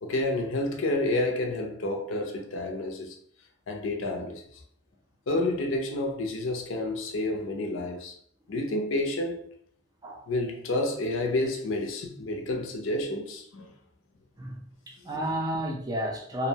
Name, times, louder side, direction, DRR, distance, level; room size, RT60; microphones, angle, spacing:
voice 1, 0.0-3.2 3.7-4.4 5.3-8.2 8.5-9.4 10.3-13.7, left 2 dB, 75° left, 0.5 m, -29 dB
voice 2, 14.9-16.5, equal, 20° right, 0.4 m, -31 dB
2.5 x 2.0 x 2.7 m
head